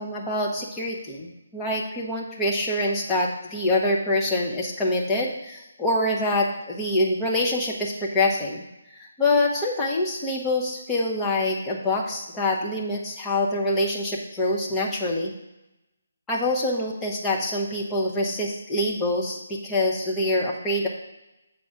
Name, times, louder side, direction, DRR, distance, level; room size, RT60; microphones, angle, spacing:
voice 1, 0.0-8.6 8.9-15.3 16.3-20.9, left 1 dB, 10° left, -4 dB, 1.3 m, -25 dB
8.7 x 4.1 x 5.9 m, 0.94 s
figure-of-eight pair, 145°, 0 cm